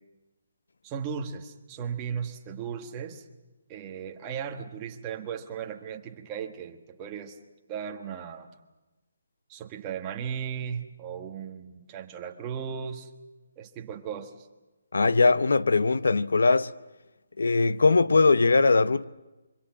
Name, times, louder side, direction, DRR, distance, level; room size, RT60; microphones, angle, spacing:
voice 1, 0.8-3.2 3.7-7.4 7.7-8.5 9.5-13.1 13.6-14.5, right 7 dB, 15° right, 1.3 m, -36 dB
voice 2, 14.9-16.7 17.4-19.0, left 3 dB, 90° left, 0.9 m, -21 dB
25.5 x 24.5 x 7.4 m
hypercardioid pair, 175°, 0 cm